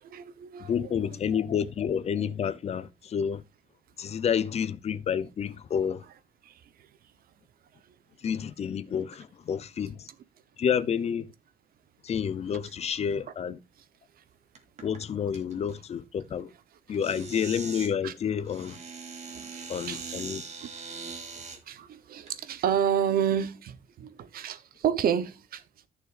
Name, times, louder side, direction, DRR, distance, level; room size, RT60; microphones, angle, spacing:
voice 1, 0.0-0.9 6.4-6.6 18.0-18.1 19.3-20.2 20.6-20.8 21.4-25.6, right 8 dB, 60° right, 1.0 m, -30 dB
voice 2, 0.6-3.4 4.0-6.0 8.2-10.1 10.6-11.3 12.0-13.6 14.8-16.5 16.9-18.8 19.7-20.4, left 7 dB, 40° left, 0.8 m, -29 dB
sound 1, 14.5-15.0 15.3-15.7 16.9-17.9 18.5-21.6 22.3-22.4 23.1-23.4, right 5 dB, 40° right, 2.6 m, -41 dB
14.5 x 6.4 x 2.6 m
cardioid pair, 155°, 17 cm